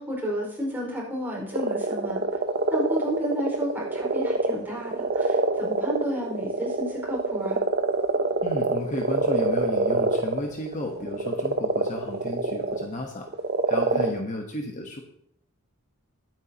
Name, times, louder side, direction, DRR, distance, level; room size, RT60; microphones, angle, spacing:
voice 1, 0.0-2.2 2.7-7.6 13.9-14.1, equal, 10° right, -4 dB, 5.1 m, -32 dB
sound 1, 1.5-12.9 13.3-14.2, right 3 dB, 45° right, 0.8 m, -25 dB
voice 2, 8.4-13.3 13.7-15.0, left 1 dB, 35° left, 2 dB, 1.2 m, -33 dB
20.5 x 9.2 x 2.9 m, 0.71 s
head